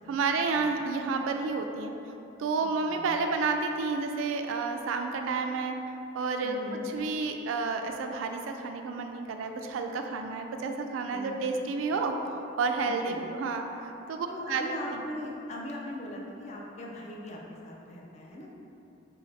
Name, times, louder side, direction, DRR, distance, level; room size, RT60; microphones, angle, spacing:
voice 1, 0.1-1.9 2.4-5.7 6.1-6.6 6.9-14.6 14.9-15.0, right 4 dB, 85° right, 5 dB, 0.3 m, -30 dB
voice 2, 2.6-3.2 6.4-6.9 11.1-11.7 12.8-13.3 14.3-18.5, left 1 dB, 35° left, -2 dB, 0.4 m, -40 dB
3.4 x 2.7 x 3.1 m, 2.8 s
head